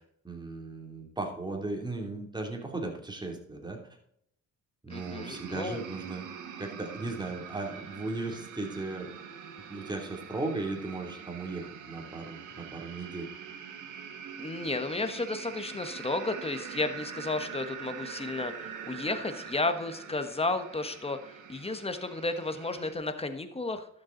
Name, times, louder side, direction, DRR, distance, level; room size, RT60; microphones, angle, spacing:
voice 1, 0.2-3.8 4.8-6.3 6.6-9.1 9.7-13.3, right 3 dB, 15° right, 2 dB, 3.0 m, -36 dB
voice 2, 4.9-5.8 14.4-23.9, left 2 dB, 20° left, 9 dB, 1.4 m, -33 dB
sound 1, 4.9-22.9, right 7 dB, 85° right, 1.8 m, -44 dB
12.0 x 7.5 x 4.0 m, 0.72 s
cardioid pair, 90°, 30 cm